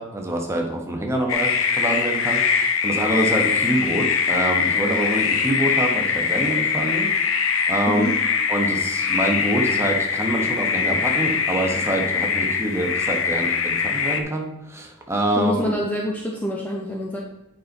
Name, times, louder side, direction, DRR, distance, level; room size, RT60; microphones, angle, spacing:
voice 1, 0.0-7.1 7.7-8.0 8.5-15.6, right 1 dB, 10° right, 1 dB, 1.0 m, -25 dB
sound 1, 1.3-14.2, left 6 dB, 60° left, 0.7 m, -22 dB
voice 2, 7.9-8.2 15.4-17.2, left 1 dB, 5° left, -1 dB, 0.6 m, -25 dB
8.6 x 5.3 x 4.0 m, 0.90 s
head